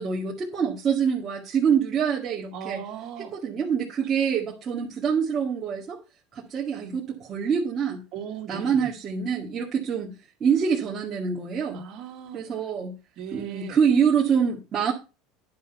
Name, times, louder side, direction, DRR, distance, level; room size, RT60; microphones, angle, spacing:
voice 1, 0.0-2.8 3.3-6.0 6.3-8.0 8.5-10.1 10.4-11.8 12.3-12.9 13.3-14.9, right 7 dB, 35° right, 2.1 m, -25 dB
voice 2, 2.5-3.3 8.1-8.9 11.7-12.4 13.2-13.8, right 8 dB, 60° right, 2.5 m, -38 dB
10.5 x 5.8 x 5.6 m
supercardioid pair, 95°, 0 cm